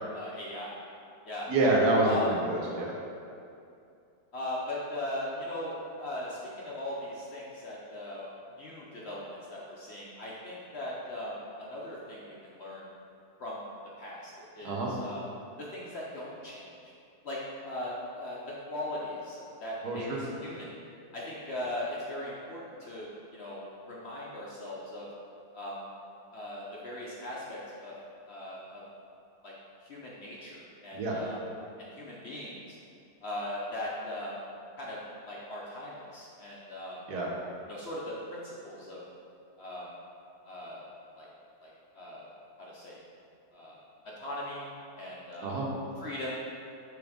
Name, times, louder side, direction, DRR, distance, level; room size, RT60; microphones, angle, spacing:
voice 1, 0.1-0.8 1.3-1.5 2.0-2.3 4.3-8.3 8.6-12.9 13.4-13.7 14.0-15.2 15.6-16.9 17.2-20.7 21.1-25.1 25.5-25.8 26.3-27.9 28.3-28.8 29.4-29.5 29.8-31.4 31.8-32.8 33.2-34.4 34.8-35.0 35.3-37.0 37.7-39.0 39.6-39.9 40.4-41.3 41.6-42.3 42.6-43.0 43.5-43.8 44.0-44.7 45.0-45.6 46.0-46.4, left 1 dB, 55° left, -5 dB, 0.8 m, -39 dB
voice 2, 1.5-3.0 14.6-14.9 19.8-20.2 30.9-31.2 37.1-37.3 45.4-45.7, right 2 dB, 70° right, -2 dB, 1.4 m, -27 dB
6.3 x 3.4 x 5.0 m, 2.5 s
omnidirectional pair, 1.7 m